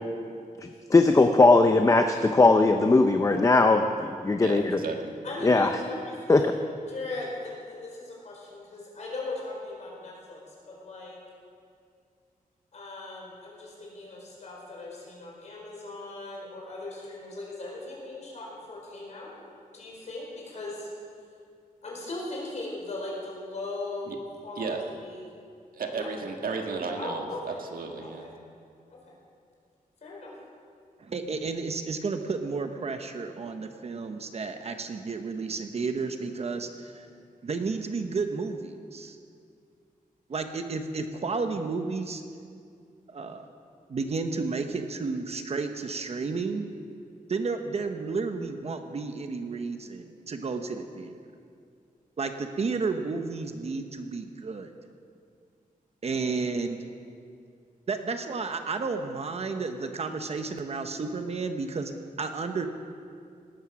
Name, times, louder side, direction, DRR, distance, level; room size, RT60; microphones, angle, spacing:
voice 1, 0.6-4.8 5.4-5.7 6.3-6.4, left 3 dB, 20° left, 6 dB, 0.6 m, -20 dB
voice 2, 4.4-5.0 24.1-24.2 24.6-24.8 25.7-28.3, right 4 dB, 80° right, 3 dB, 1.7 m, -34 dB
voice 3, 5.2-11.2 12.7-19.3 19.7-20.9 21.8-24.2 24.4-24.8 25.0-25.3 25.9-26.1 27.0-27.6 28.0-28.3 28.9-29.1 30.0-30.3, left 2 dB, 50° left, -3 dB, 4.8 m, -38 dB
voice 4, 31.0-37.1 37.4-39.2 40.3-42.2 43.1-43.5 43.9-46.7 47.3-51.2 52.2-54.7 56.0-56.9 57.9-61.9 62.2-62.7, right 4 dB, 45° right, 7 dB, 1.0 m, -32 dB
18.0 x 13.0 x 6.2 m, 2.3 s
wide cardioid pair, 180°, 15 cm